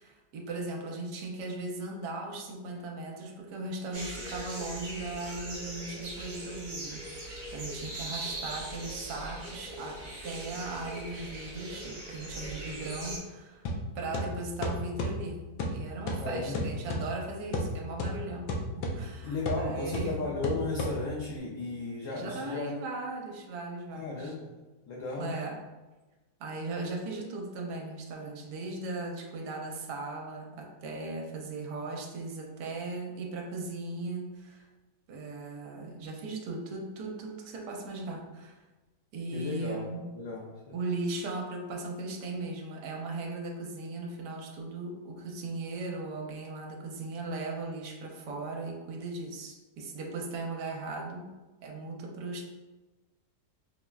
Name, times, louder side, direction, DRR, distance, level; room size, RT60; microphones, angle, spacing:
voice 1, 0.0-13.6 13.9-15.4 15.7-20.1 22.1-24.3 25.2-25.6 26.4-34.7 35.1-38.6 39.1-40.1 40.7-51.3 51.6-52.4, right 2 dB, 85° right, 1 dB, 1.2 m, -38 dB
sound 1, 3.9-13.2, right 1 dB, 50° right, 0.6 m, -40 dB
sound 2, 13.7-21.4, left 1 dB, 85° left, 1.2 m, -35 dB
voice 2, 16.2-16.7 19.2-22.7 23.9-24.6 24.8-25.3 39.3-39.9 40.1-40.8, left 3 dB, 65° left, -4 dB, 0.8 m, -35 dB
5.5 x 2.0 x 2.3 m, 1.2 s
omnidirectional pair, 1.8 m